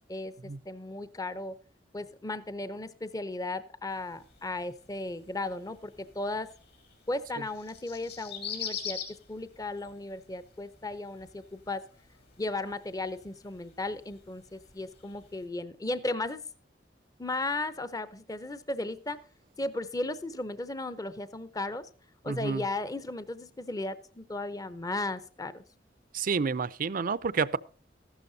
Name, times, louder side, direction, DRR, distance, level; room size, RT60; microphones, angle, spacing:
voice 1, 0.1-1.6 1.9-6.5 7.1-9.0 9.3-11.9 12.4-16.4 17.2-19.2 19.6-21.9 22.2-25.6, left 2 dB, 20° left, 0.7 m, -35 dB
sound 1, 3.9-15.5, left 7 dB, 65° left, 4.1 m, -45 dB
voice 2, 22.3-22.6 26.1-27.6, right 5 dB, 50° right, 0.5 m, -29 dB
14.5 x 12.0 x 2.7 m
head